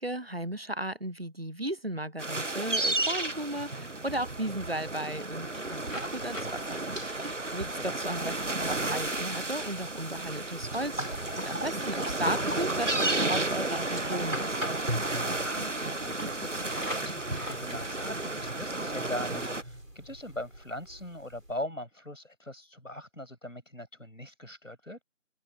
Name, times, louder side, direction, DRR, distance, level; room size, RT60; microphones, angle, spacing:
voice 1, 0.0-14.6, right 1 dB, 50° right, 0.9 m, -35 dB
sound 1, 2.2-19.6, right 2 dB, 65° right, 1.5 m, -32 dB
sound 2, 5.9-21.6, equal, 90° right, 6.5 m, -41 dB
voice 2, 7.5-8.0 15.4-25.0, left 1 dB, 85° left, 6.6 m, -41 dB
figure-of-eight pair, 180°, 39 cm